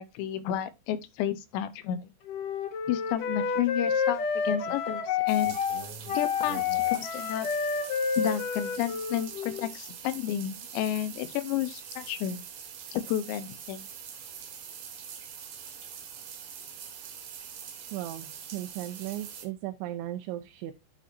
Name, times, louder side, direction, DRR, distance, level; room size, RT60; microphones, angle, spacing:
voice 1, 0.0-2.0 2.9-5.6 6.1-6.6 6.9-7.5 8.2-12.4 12.9-13.9, left 11 dB, 85° left, 3.1 m, -31 dB
Wind instrument woodwind instrument, 2.3-9.7, left 6 dB, 60° left, 2.7 m, -29 dB
sound 1, 5.3-19.5, right 7 dB, 60° right, 3.2 m, -43 dB
voice 2, 17.9-20.7, right 14 dB, 85° right, 3.1 m, -36 dB
10.0 x 7.6 x 2.6 m
omnidirectional pair, 5.1 m